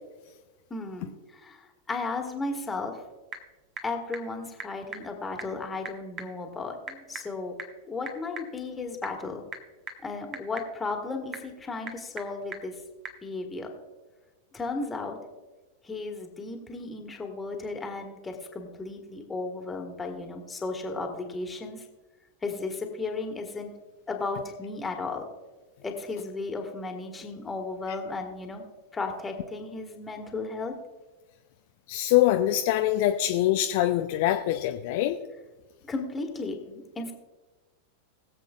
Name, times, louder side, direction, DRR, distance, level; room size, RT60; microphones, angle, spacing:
voice 1, 0.7-3.0 3.8-7.5 7.9-9.4 10.0-12.8 13.2-13.7 14.5-15.2 15.8-21.8 22.4-23.8 24.1-25.2 25.8-28.6 28.9-30.7 35.9-37.1, left 3 dB, 15° left, 3 dB, 1.7 m, -34 dB
Typing / Telephone, 2.7-13.3, right 5 dB, 30° right, 1.2 m, -45 dB
voice 2, 31.9-35.2, left 13 dB, 50° left, 6 dB, 0.5 m, -24 dB
21.0 x 7.6 x 2.4 m, 1.2 s
figure-of-eight pair, 90°, 0 cm